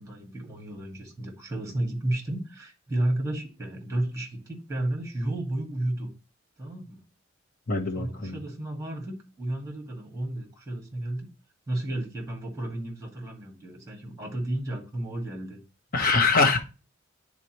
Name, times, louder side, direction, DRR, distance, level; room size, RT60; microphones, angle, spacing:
voice 1, 0.0-6.1 6.6-7.0 7.9-11.3 11.7-15.6, right 1 dB, 15° right, 1.9 m, -32 dB
voice 2, 7.7-8.4 15.9-16.6, left 4 dB, 45° left, 1.2 m, -23 dB
9.8 x 4.1 x 3.1 m
head